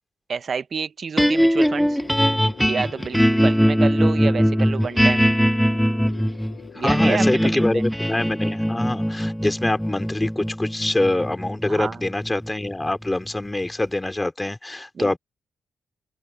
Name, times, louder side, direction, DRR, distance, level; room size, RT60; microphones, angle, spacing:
voice 1, 0.3-2.0 2.6-5.3 6.7-7.8 11.7-12.0 14.9-15.1, right 6 dB, 55° right, 1.2 m, -29 dB
sound 1, 1.2-13.5, equal, ahead, 0.6 m, -21 dB
sound 2, 1.9-7.0, left 8 dB, 75° left, 7.0 m, -43 dB
voice 2, 6.7-15.2, left 2 dB, 15° left, 4.3 m, -25 dB
cardioid pair, 60°, 0 cm